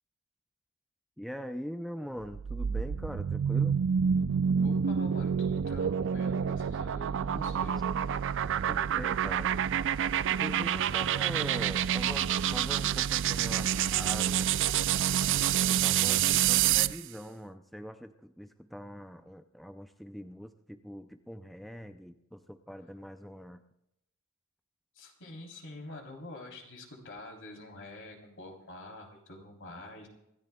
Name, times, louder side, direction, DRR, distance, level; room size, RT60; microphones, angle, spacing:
voice 1, 1.2-3.8 8.7-9.5 10.3-14.5 15.7-23.6, equal, ahead, 7 dB, 0.5 m, -42 dB
sound 1, 2.2-17.0, right 9 dB, 60° right, 0.4 m, -28 dB
voice 2, 4.6-7.8 25.0-30.1, left 1 dB, 60° left, 1 dB, 3.4 m, -46 dB
26.0 x 14.0 x 2.3 m, 0.84 s
head